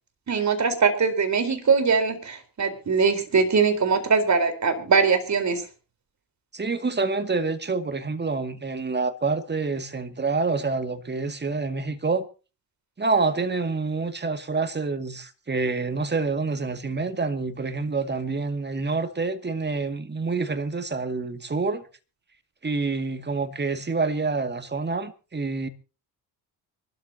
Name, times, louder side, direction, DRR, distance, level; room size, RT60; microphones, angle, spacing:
voice 1, 0.3-5.6, right 5 dB, 40° right, 4.3 m, -22 dB
voice 2, 6.5-12.3 13.0-21.8 22.6-25.7, right 4 dB, 25° right, 2.2 m, -27 dB
25.0 x 13.0 x 2.9 m
hypercardioid pair, 55°, 42 cm